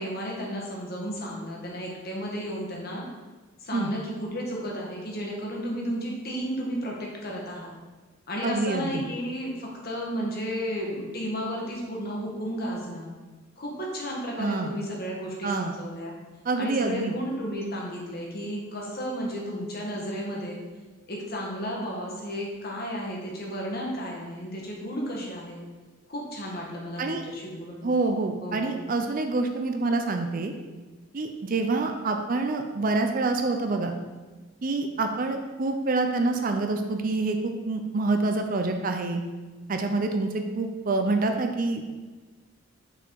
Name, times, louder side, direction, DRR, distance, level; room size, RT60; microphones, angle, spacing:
voice 1, 0.0-3.1 3.6-7.7 8.3-13.1 13.6-16.2 16.6-20.6 21.1-25.6 26.1-27.9 28.4-28.8, equal, 50° left, -2 dB, 1.4 m, -33 dB
voice 2, 8.4-9.0 14.4-14.7 15.4-15.7 16.4-17.1 27.0-27.2 27.8-30.5 31.1-33.9 34.6-39.2 39.7-41.8, right 3 dB, 45° right, 5 dB, 0.5 m, -27 dB
5.6 x 4.3 x 4.6 m, 1.3 s
head